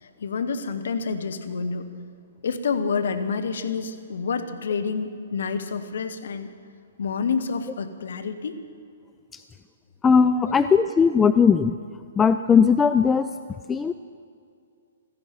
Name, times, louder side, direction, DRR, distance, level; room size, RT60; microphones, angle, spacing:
voice 1, 0.0-1.9 2.4-6.5 7.0-8.6 10.5-10.6, left 5 dB, 70° left, 9 dB, 1.1 m, -28 dB
voice 2, 10.0-11.8 12.2-13.3 13.7-13.9, left 6 dB, 15° left, 10 dB, 0.4 m, -18 dB
16.0 x 14.5 x 5.8 m, 2.4 s
hypercardioid pair, 125°, 0 cm